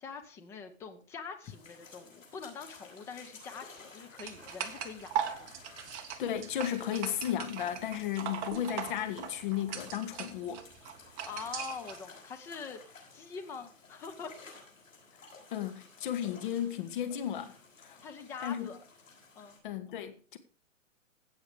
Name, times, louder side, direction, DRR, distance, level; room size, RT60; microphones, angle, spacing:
voice 1, 0.0-5.5 11.3-12.8 13.1-14.4 18.0-18.8 19.3-19.6, left 5 dB, 5° left, 0.6 m, -44 dB
sound 1, 1.4-19.6, left 4 dB, 80° left, 6.7 m, -55 dB
sound 2, 4.2-12.0, right 8 dB, 25° right, 1.2 m, -40 dB
voice 2, 6.2-10.6 15.5-17.5 17.8-18.0 18.4-18.7 19.6-20.4, left 10 dB, 40° left, 1.7 m, -34 dB
16.5 x 6.5 x 4.9 m
hypercardioid pair, 145°, 39 cm